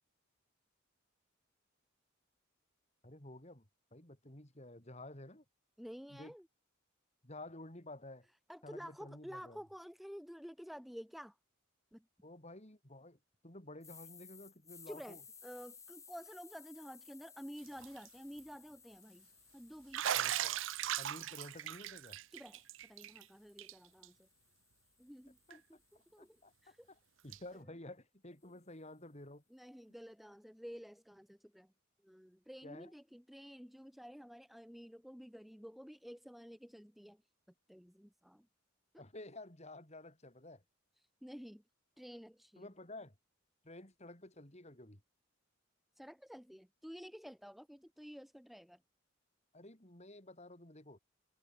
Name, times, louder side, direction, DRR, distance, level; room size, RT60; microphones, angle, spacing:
voice 1, 3.0-5.4 6.1-6.3 7.2-8.3 8.6-9.6 12.2-13.2 13.4-15.2 20.1-20.6 21.0-22.2 25.5-25.6 25.9-29.4 32.6-32.9 39.0-40.6 42.6-43.2 43.6-45.0 49.5-51.0, left 1 dB, 35° left, 4.5 m, -52 dB
voice 2, 5.8-6.5 8.5-11.4 11.9-12.0 14.9-19.3 19.5-20.0 22.3-24.3 25.0-25.6 25.9-26.4 26.6-26.9 29.5-31.7 32.0-37.2 37.7-38.5 38.9-39.0 41.2-41.6 42.0-42.7 46.0-48.8, equal, ahead, 0.8 m, -51 dB
sound 1, 13.8-21.9 22.4-26.6, left 6 dB, 15° left, 1.8 m, -60 dB
Bathtub (filling or washing), 17.7-18.1 18.4-18.5 19.9-23.2 23.6-23.7 24.0-24.1 25.5-25.6 27.3-27.4, right 11 dB, 65° right, 0.5 m, -38 dB
head